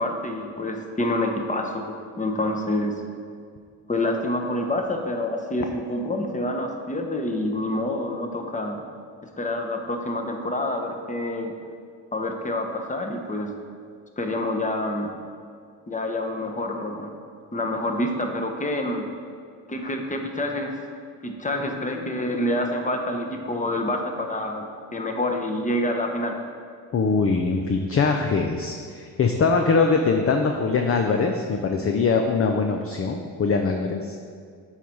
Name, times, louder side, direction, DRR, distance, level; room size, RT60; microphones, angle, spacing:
voice 1, 0.0-2.9 3.9-8.8 9.4-11.5 12.1-13.5 14.2-15.1 15.9-17.1 17.5-19.1 19.7-20.7 21.2-24.7 24.9-26.3, left 1 dB, 15° left, 3 dB, 1.0 m, -27 dB
voice 2, 26.9-34.2, left 4 dB, 35° left, 4 dB, 0.6 m, -22 dB
8.2 x 4.1 x 4.5 m, 2.1 s
supercardioid pair, 65°, 43 cm